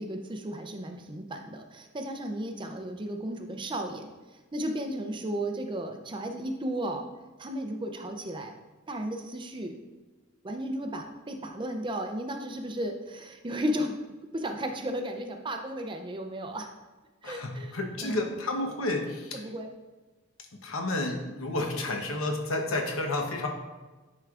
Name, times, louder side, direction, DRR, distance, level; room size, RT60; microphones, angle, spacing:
voice 1, 0.0-4.1 4.5-7.0 7.4-8.5 8.9-9.8 10.4-13.9 14.3-16.7 17.2-17.7 18.0-18.2 19.3-19.7, right 1 dB, 25° right, 4 dB, 0.5 m, -34 dB
voice 2, 17.2-19.4 20.6-23.5, left 2 dB, 75° left, 3 dB, 0.9 m, -31 dB
9.9 x 4.5 x 2.5 m, 1.2 s
head